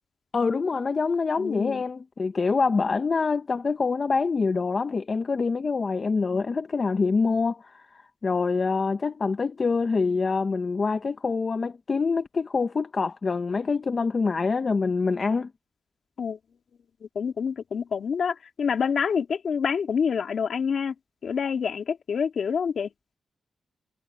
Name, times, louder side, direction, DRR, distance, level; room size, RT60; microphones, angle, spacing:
voice 1, 0.3-15.5, left 4 dB, 45° left, 0.8 m, -25 dB
voice 2, 1.4-1.8 16.2-16.4 17.2-20.9 21.2-22.9, left 6 dB, 65° left, 2.3 m, -27 dB
cardioid pair, 90°, 0 cm